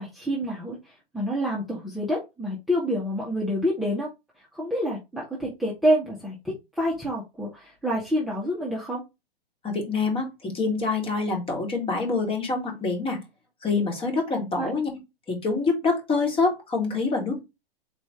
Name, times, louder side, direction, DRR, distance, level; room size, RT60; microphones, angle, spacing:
voice 1, 0.0-4.1 4.5-9.0 14.6-14.7, equal, ahead, -5 dB, 1.2 m, -27 dB
voice 2, 9.6-13.2 13.6-14.9 15.3-17.4, left 4 dB, 20° left, 1 dB, 1.8 m, -26 dB
4.3 x 3.0 x 3.6 m, 0.23 s
figure-of-eight pair, 110°, 30 cm